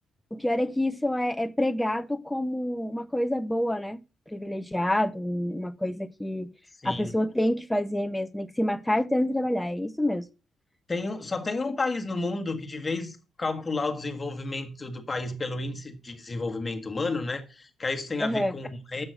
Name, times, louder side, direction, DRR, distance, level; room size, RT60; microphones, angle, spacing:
voice 1, 0.3-4.0 4.3-6.5 6.8-10.3 18.2-18.6, left 1 dB, 5° left, 0.6 m, -27 dB
voice 2, 6.8-7.1 10.9-19.1, left 3 dB, 25° left, 1.6 m, -31 dB
7.8 x 6.1 x 6.1 m
cardioid pair, 90°, 0 cm